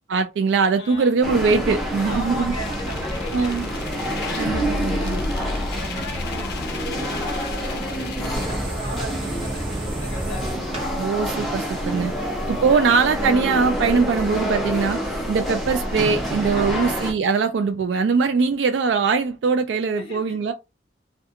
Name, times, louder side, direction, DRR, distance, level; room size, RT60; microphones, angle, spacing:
voice 1, 0.1-2.5 3.3-3.7 4.4-5.2 11.0-12.1 12.5-15.0 15.3-20.5, right 5 dB, 70° right, 0.3 m, -21 dB
voice 2, 0.8-1.2 2.0-3.8 4.2-10.7 12.0-12.3 12.7-12.9 16.5-17.0 19.9-20.4, left 1 dB, 30° left, 1.1 m, -38 dB
sound 1, 1.2-17.1, equal, ahead, 0.8 m, -28 dB
sound 2, 2.4-8.4, left 3 dB, 60° left, 0.4 m, -32 dB
sound 3, 8.3-13.3, right 1 dB, 30° right, 0.8 m, -33 dB
2.3 x 2.2 x 2.8 m
head